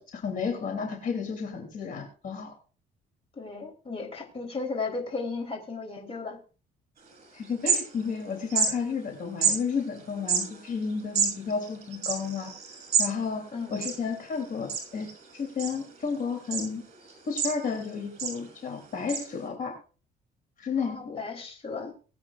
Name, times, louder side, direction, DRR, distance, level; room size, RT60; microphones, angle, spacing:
voice 1, 0.0-2.5 7.3-12.5 13.0-13.4 13.7-15.1 15.3-16.8 17.3-19.8 20.6-21.2, left 5 dB, 55° left, 3 dB, 3.2 m, -32 dB
voice 2, 3.4-6.4 13.5-13.8 20.8-21.9, left 4 dB, 35° left, 3 dB, 3.7 m, -35 dB
sound 1, 7.1-7.2 7.4-8.2 8.5-8.7 9.4-9.6 10.2-13.1 13.4-13.5 13.7-14.4 14.7-15.1 15.6-16.1 16.5-16.7 17.1-17.8 18.2-18.4 19.1-19.2, right 6 dB, 45° right, 6.3 m, -27 dB
21.5 x 8.8 x 2.5 m, 0.38 s
cardioid pair, 110°, 17 cm